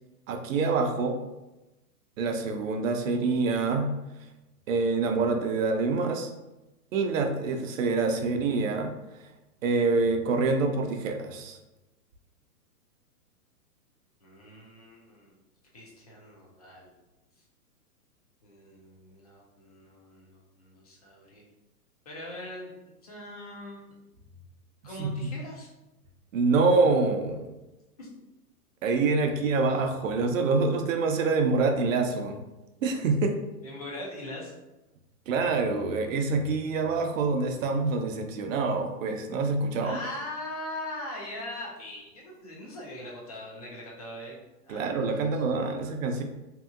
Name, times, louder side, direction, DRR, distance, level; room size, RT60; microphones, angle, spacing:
voice 1, 0.3-1.2 2.2-3.9 4.7-6.3 6.9-8.9 9.6-11.6 25.0-25.1 26.3-27.5 28.8-32.4 32.8-33.3 35.3-40.0 44.7-46.2, right 3 dB, 55° right, 5 dB, 0.5 m, -26 dB
voice 2, 14.2-15.4 15.7-16.9 17.4-17.5 18.4-21.4 22.1-22.7 23.0-24.0 24.8-25.7 28.0-28.1 33.6-34.5 39.8-44.4 44.6-45.4 45.8-45.9, left 1 dB, 30° left, -3 dB, 0.4 m, -41 dB
2.7 x 2.7 x 2.4 m, 0.99 s
hypercardioid pair, 145°, 47 cm